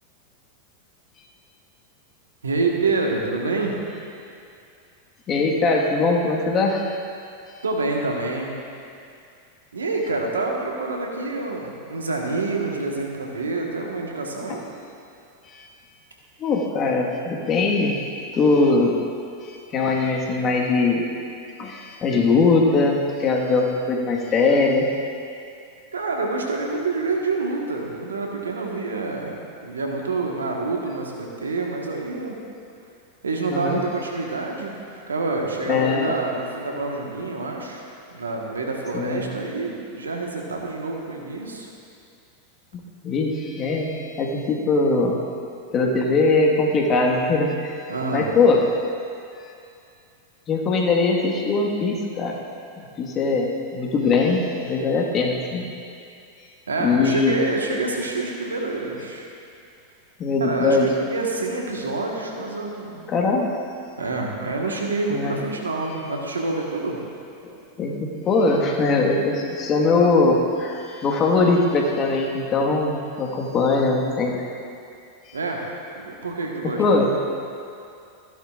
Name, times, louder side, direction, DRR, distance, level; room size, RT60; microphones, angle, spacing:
voice 1, 2.4-3.8 7.6-8.5 9.7-14.6 25.9-29.3 29.6-32.4 33.2-34.7 35.1-37.8 38.1-41.7 47.9-48.3 56.7-59.3 60.4-63.0 64.0-67.0 75.3-75.6 75.9-76.8, right 3 dB, 85° right, 0 dB, 1.4 m, -27 dB
voice 2, 5.3-7.0 14.5-14.6 15.5-15.7 16.4-18.0 18.3-18.9 19.4-21.0 21.6-24.9 33.5-33.8 35.7-36.2 38.9-39.3 42.7-45.2 45.7-47.8 48.1-48.6 49.4-49.5 50.5-52.3 53.0-55.7 56.8-57.4 60.2-60.9 63.1-63.5 65.1-65.4 67.8-74.4 75.3-75.4 76.6-77.1, left 3 dB, 35° left, 0 dB, 1.5 m, -21 dB
14.5 x 11.0 x 2.5 m, 2.5 s
hypercardioid pair, 95°, 0 cm